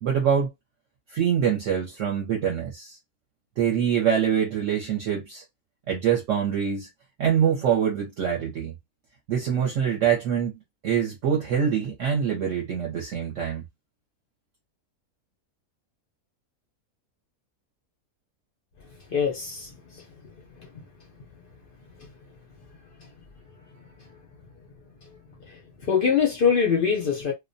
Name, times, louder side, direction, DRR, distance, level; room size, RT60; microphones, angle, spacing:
voice 1, 0.0-0.5 1.1-3.0 3.6-5.4 5.9-6.9 7.2-8.7 9.3-10.5 10.8-13.6, right 8 dB, 60° right, 0.9 m, -24 dB
voice 2, 19.1-20.0 25.5-27.3, left 6 dB, 65° left, 0.5 m, -24 dB
2.5 x 2.1 x 2.5 m
omnidirectional pair, 1.6 m